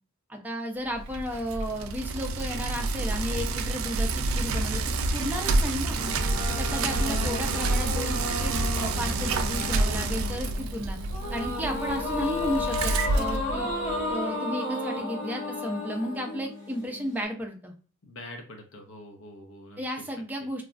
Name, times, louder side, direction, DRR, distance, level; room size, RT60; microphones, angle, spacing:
voice 1, 0.3-4.8 5.1-6.0 6.6-11.0 11.3-13.7 14.1-17.7 19.8-20.6, equal, 10° right, 1 dB, 0.5 m, -33 dB
Bicycle, 0.9-14.1, right 3 dB, 75° right, 0.4 m, -28 dB
sound 1, 5.9-17.2, left 2 dB, 40° left, 1.0 m, -33 dB
voice 2, 6.7-7.4 18.0-19.8, left 1 dB, 65° left, 3 dB, 0.6 m, -44 dB
3.1 x 2.4 x 2.4 m, 0.35 s
head